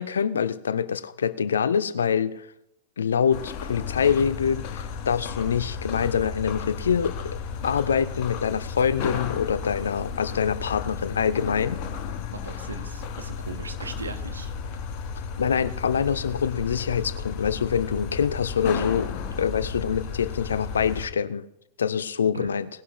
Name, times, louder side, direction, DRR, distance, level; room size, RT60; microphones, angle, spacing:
voice 1, 0.0-2.5 3.0-11.8 15.4-21.4 21.8-22.7, left 7 dB, 70° left, 16 dB, 0.5 m, -25 dB
sound 1, 3.3-21.1, left 6 dB, 45° left, 1.3 m, -33 dB
voice 2, 12.3-14.8 22.3-22.5, right 4 dB, 75° right, 8 dB, 1.1 m, -38 dB
19.0 x 11.0 x 3.0 m, 0.82 s
figure-of-eight pair, 90°, 0 cm